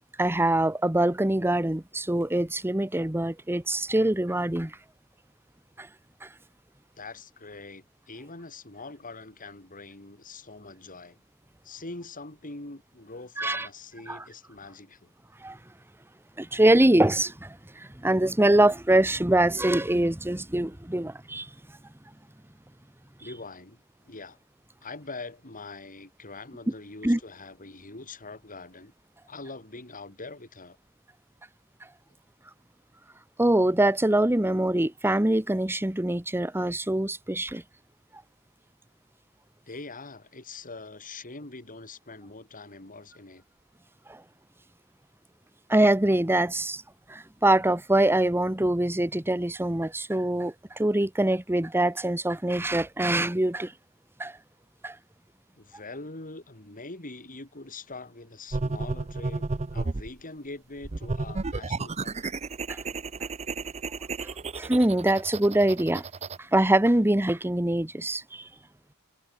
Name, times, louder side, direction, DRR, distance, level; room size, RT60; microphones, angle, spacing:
voice 1, 0.2-4.7 5.8-5.9 6.2-6.3 13.4-13.7 14.1-14.2 15.4-15.6 16.4-21.5 27.0-27.2 33.4-37.6 44.1-44.2 45.7-46.8 47.1-53.7 54.2-54.3 54.8-55.0 62.7-62.8 64.2-64.3 64.5-66.0 66.5-68.5, right 1 dB, 10° right, 1.1 m, -24 dB
voice 2, 7.0-11.2 11.6-15.1 18.6-18.8 23.2-24.4 24.8-28.9 29.3-30.8 39.7-43.4 55.6-62.2, left 3 dB, 40° left, 4.4 m, -43 dB
sound 1, 58.5-60.1 60.8-66.4, right 3 dB, 30° right, 0.7 m, -32 dB
head